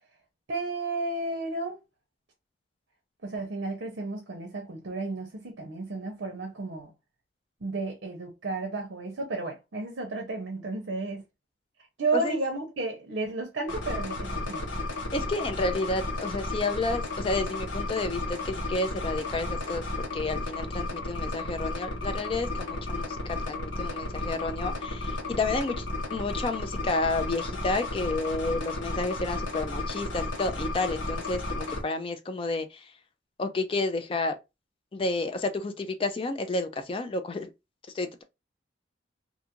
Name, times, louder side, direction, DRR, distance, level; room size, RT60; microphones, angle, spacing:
voice 1, 0.5-1.8 3.2-6.9 7.6-11.2 12.0-14.8, right 3 dB, 70° right, 0.6 m, -32 dB
sound 1, 13.7-31.8, left 2 dB, 85° left, 1.0 m, -33 dB
voice 2, 15.1-25.9 26.1-32.9 33.4-34.4 34.9-37.5 37.9-38.2, left 3 dB, 30° left, 0.3 m, -31 dB
2.6 x 2.4 x 2.8 m
head